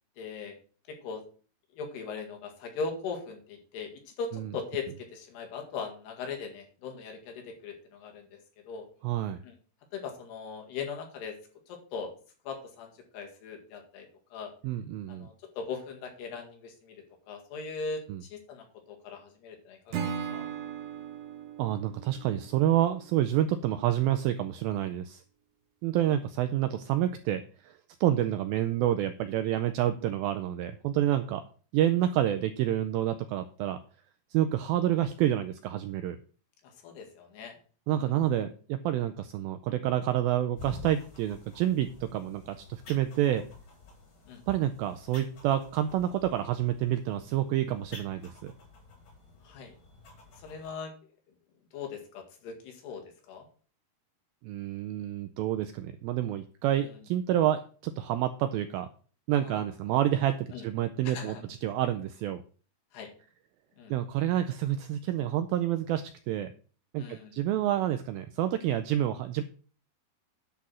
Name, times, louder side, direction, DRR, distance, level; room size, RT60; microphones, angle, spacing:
voice 1, 0.2-0.6 0.9-1.2 1.7-8.4 8.7-8.9 9.4-9.6 9.9-11.4 11.7-12.1 12.5-14.5 15.1-20.5 26.0-26.1 36.6-37.6 38.0-38.1 44.3-44.4 49.4-49.7 50.4-50.9 51.7-53.5 56.8-57.0 59.3-59.6 60.5-60.6 61.0-61.4 62.9-63.1 63.8-63.9 67.0-67.3, left 5 dB, 75° left, 3 dB, 3.9 m, -40 dB
voice 2, 9.0-9.4 14.6-15.3 18.1-18.2 21.6-25.2 25.8-31.4 31.7-33.8 34.3-36.2 37.9-43.4 44.5-48.5 54.4-58.9 59.3-61.4 61.6-62.4 63.9-66.5 66.9-69.4, right 12 dB, 85° right, 9 dB, 2.1 m, -28 dB
Acoustic guitar / Strum, 19.9-23.1, right 7 dB, 70° right, 2.3 m, -38 dB
sound 1, 40.6-50.7, left 3 dB, 50° left, 5.4 m, -50 dB
10.5 x 4.2 x 7.5 m, 0.41 s
omnidirectional pair, 4.8 m